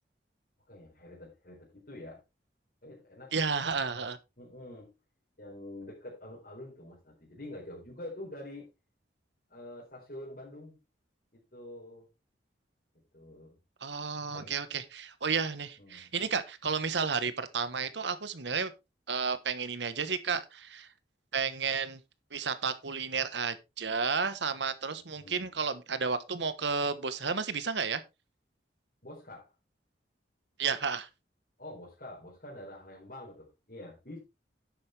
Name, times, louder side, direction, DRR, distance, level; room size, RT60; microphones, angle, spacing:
voice 1, 0.7-2.2 2.8-3.3 3.9-4.1 4.4-4.9 5.4-8.7 9.5-10.8 11.5-12.1 13.1-13.6 14.3-14.6 15.8-16.1 25.1-25.5 29.0-29.5 31.6-34.2, left 1 dB, 50° left, 4.5 m, -46 dB
voice 2, 3.3-4.2 13.8-18.7 19.1-20.9 21.3-22.0 22.3-28.0 30.6-31.1, right 5 dB, 75° right, 1.2 m, -32 dB
10.5 x 8.6 x 3.4 m
head